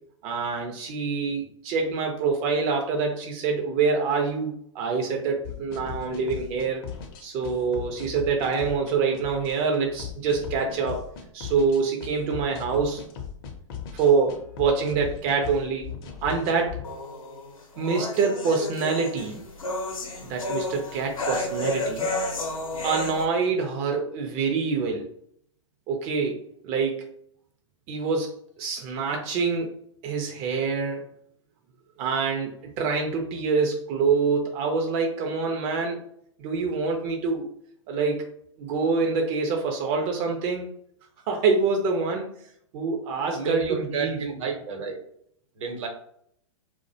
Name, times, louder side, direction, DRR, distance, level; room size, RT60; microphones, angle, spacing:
voice 1, 0.2-6.8 7.2-11.1 11.3-13.0 13.9-15.9 16.2-16.8 17.8-19.4 20.2-22.1 22.8-25.1 25.9-27.1 27.9-29.8 30.0-31.1 32.0-36.0 36.4-37.5 37.9-38.3 38.6-40.7 41.3-42.3 42.7-44.2, right 5 dB, 35° right, 2 dB, 0.4 m, -26 dB
sound 1, 5.4-16.8, left 7 dB, 45° left, 0.5 m, -38 dB
sound 2, 16.8-23.3, left 2 dB, 85° left, 0.6 m, -31 dB
voice 2, 43.3-45.0 45.6-45.9, right 5 dB, 65° right, 3 dB, 0.7 m, -30 dB
2.3 x 2.1 x 2.6 m, 0.67 s
hypercardioid pair, 110°, 17 cm